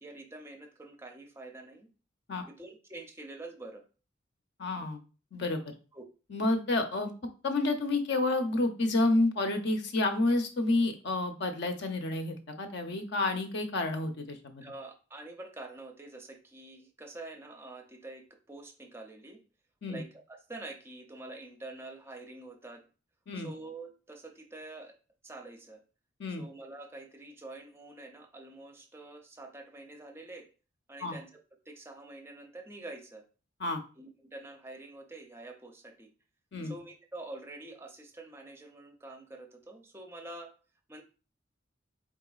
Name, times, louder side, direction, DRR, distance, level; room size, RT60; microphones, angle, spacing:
voice 1, 0.0-1.9 2.5-3.9 5.9-6.1 14.6-19.4 19.9-22.8 23.4-25.0 25.2-25.8 26.4-30.5 30.9-31.4 31.7-33.2 34.0-36.1 36.6-40.5 40.9-41.0, right 2 dB, 15° right, 4 dB, 0.5 m, -46 dB
voice 2, 4.6-5.0 5.3-5.7 6.3-7.1 7.4-14.6 19.8-20.0 23.3-23.5 26.2-26.4 31.0-31.2 33.6-33.8 36.5-36.7, left 2 dB, 65° left, 6 dB, 0.6 m, -29 dB
4.2 x 3.8 x 2.4 m, 0.35 s
head